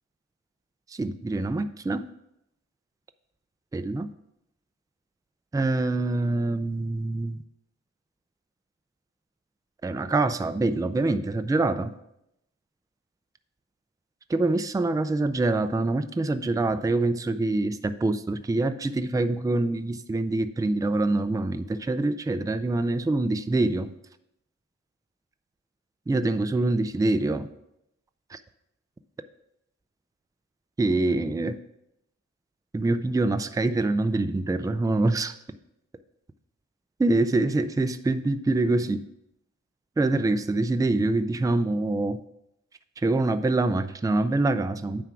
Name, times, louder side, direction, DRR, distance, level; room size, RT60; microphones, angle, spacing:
voice 1, 0.9-2.0 3.7-4.1 5.5-7.4 9.8-11.9 14.3-23.9 26.1-27.5 28.3-28.4 30.8-31.6 32.7-35.3 37.0-39.0 40.0-42.2 43.0-45.0, right 2 dB, 10° right, 10 dB, 0.4 m, -25 dB
9.4 x 3.5 x 5.9 m, 0.81 s
wide cardioid pair, 85°, 30 cm